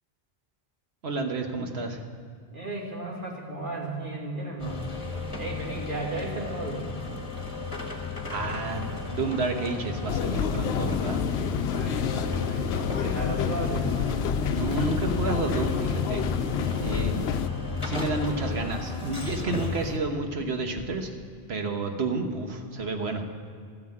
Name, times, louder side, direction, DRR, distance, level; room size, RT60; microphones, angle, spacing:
voice 1, 1.0-2.0 8.3-11.2 14.5-16.2 16.8-17.3 17.8-21.1 21.5-23.2, right 3 dB, 85° right, 4 dB, 1.5 m, -30 dB
voice 2, 2.5-4.8 5.4-7.0 11.5-14.1, right 2 dB, 55° right, -3 dB, 2.7 m, -35 dB
sound 1, 4.6-20.0, left 3 dB, 30° left, 1.7 m, -34 dB
sound 2, 10.1-17.5, left 7 dB, 85° left, 0.9 m, -28 dB
sound 3, 12.6-19.9, left 3 dB, 45° left, 1.0 m, -45 dB
13.0 x 9.5 x 7.7 m, 2.3 s
omnidirectional pair, 1.1 m